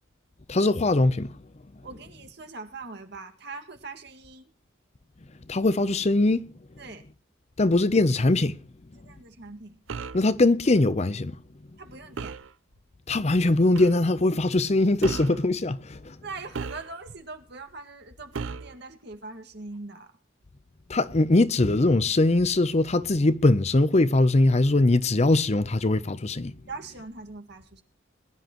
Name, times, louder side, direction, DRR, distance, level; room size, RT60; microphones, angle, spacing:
voice 1, 0.5-1.4 5.5-6.5 7.6-8.6 10.1-11.3 13.1-16.1 20.9-26.5, left 2 dB, 35° left, 0.6 m, -21 dB
voice 2, 1.8-4.5 6.8-7.0 9.0-9.8 11.8-12.4 16.2-20.1 26.7-27.8, right 3 dB, 60° right, 2.0 m, -41 dB
sound 1, 9.9-10.3 12.2-12.5 13.7-14.0 15.0-15.4 16.5-17.2 18.3-18.8, right 5 dB, 85° right, 0.6 m, -35 dB
21.5 x 11.5 x 3.0 m
head